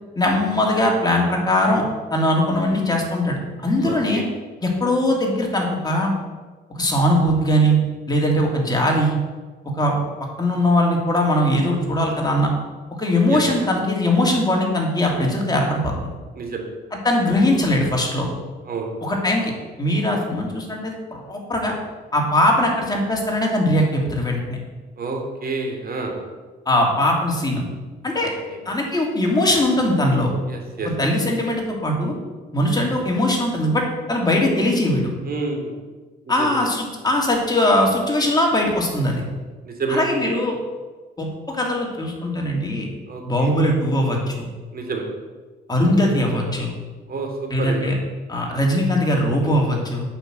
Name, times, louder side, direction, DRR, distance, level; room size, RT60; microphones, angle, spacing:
voice 1, 0.2-1.8 2.1-4.2 4.6-6.1 6.7-7.8 8.1-9.1 9.8-9.9 10.4-12.5 13.0-16.1 17.0-18.3 19.0-19.5 19.8-21.7 22.1-24.6 26.7-27.6 28.0-28.3 28.6-30.3 31.0-32.1 32.5-33.8 34.1-35.1 36.3-39.2 39.9-40.5 41.2-42.9 43.3-44.5 45.7-46.7 47.5-47.9 48.3-50.0, left 1 dB, 20° left, -1 dB, 2.9 m, -20 dB
voice 2, 3.8-4.2 13.3-13.4 16.3-16.7 18.6-18.9 25.0-26.1 28.5-28.6 30.5-30.9 35.2-35.7 36.3-36.5 39.6-40.1 43.1-43.5 44.7-45.0 47.1-47.9, right 3 dB, 50° right, 1 dB, 2.9 m, -28 dB
9.0 x 5.9 x 8.0 m, 1.3 s
cardioid pair, 90°, 20 cm